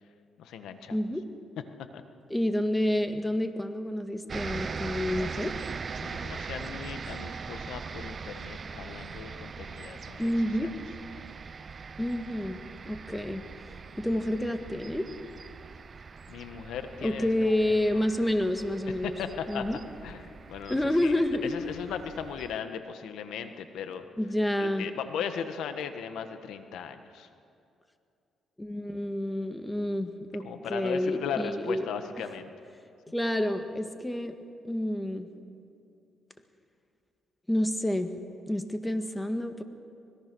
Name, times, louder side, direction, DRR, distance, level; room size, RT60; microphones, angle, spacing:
voice 1, 0.4-1.0 1.9-2.0 6.0-10.3 10.6-10.7 16.3-18.0 19.0-19.7 20.0-24.1 24.6-27.3 30.4-32.5, left 7 dB, 80° left, 8 dB, 1.4 m, -37 dB
voice 2, 0.9-1.3 2.3-5.6 10.2-10.7 12.0-12.6 12.8-13.4 14.0-15.1 17.0-19.2 19.5-19.8 20.7-21.5 24.2-24.9 28.6-31.8 33.1-34.4 34.6-35.3 37.5-38.1 38.5-39.6, left 1 dB, 10° left, 7 dB, 1.7 m, -29 dB
sound 1, 4.3-22.6, right 5 dB, 40° right, 0.6 m, -41 dB
25.0 x 21.5 x 6.3 m, 2.5 s
cardioid pair, 90°, 0 cm